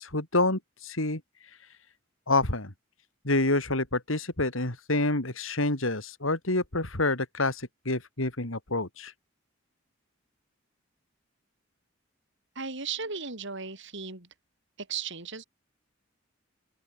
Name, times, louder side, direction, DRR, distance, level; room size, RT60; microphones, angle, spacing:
voice 1, 0.0-1.8 2.3-2.7 3.2-9.1, left 2 dB, 85° left, 4.1 m, -28 dB
voice 2, 12.5-14.3 14.8-15.4, right 5 dB, 65° right, 7.7 m, -36 dB
open air
head